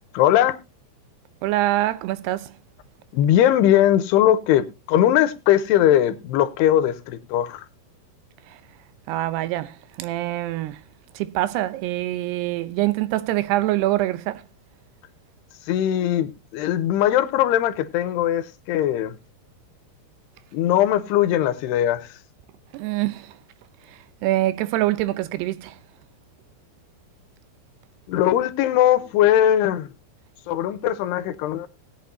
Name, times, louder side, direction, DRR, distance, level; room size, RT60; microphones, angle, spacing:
voice 1, 0.1-0.6 3.1-7.7 15.7-19.2 20.5-22.1 28.1-29.9 30.5-31.7, left 11 dB, 85° left, 2.9 m, -20 dB
voice 2, 1.4-2.5 9.1-10.8 11.2-14.4 22.7-23.3 24.2-25.8, right 16 dB, 85° right, 2.8 m, -24 dB
19.0 x 8.5 x 2.7 m
omnidirectional pair, 4.7 m